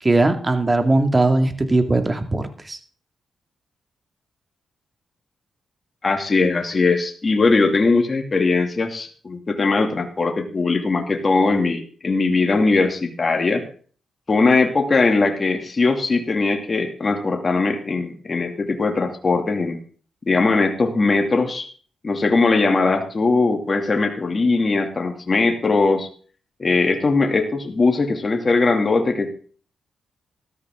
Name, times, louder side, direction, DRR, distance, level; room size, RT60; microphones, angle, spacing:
voice 1, 0.0-2.8, right 2 dB, 25° right, 7 dB, 2.3 m, -19 dB
voice 2, 6.0-13.6 14.3-19.8 20.3-21.7 22.0-26.1 26.6-29.3, left 3 dB, 40° left, 4 dB, 2.6 m, -20 dB
14.0 x 13.5 x 3.8 m, 0.42 s
cardioid pair, 65°, 0 cm